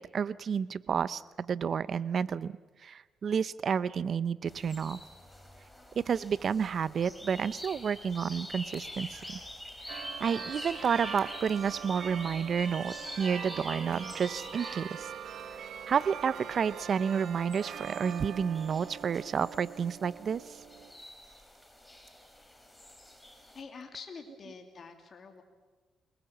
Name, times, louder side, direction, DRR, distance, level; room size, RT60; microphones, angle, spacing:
voice 1, 0.0-2.5 2.8-5.0 6.0-9.4 9.9-15.1 15.9-20.6, right 7 dB, 50° right, 17 dB, 0.7 m, -30 dB
sound 1, 4.5-23.6, left 1 dB, 10° left, 3.4 m, -46 dB
sound 2, 9.9-20.9, right 8 dB, 70° right, 1.4 m, -43 dB
voice 2, 23.5-25.4, left 5 dB, 45° left, 4 dB, 2.8 m, -46 dB
27.0 x 20.0 x 7.2 m, 1.3 s
cardioid pair, 90°, 0 cm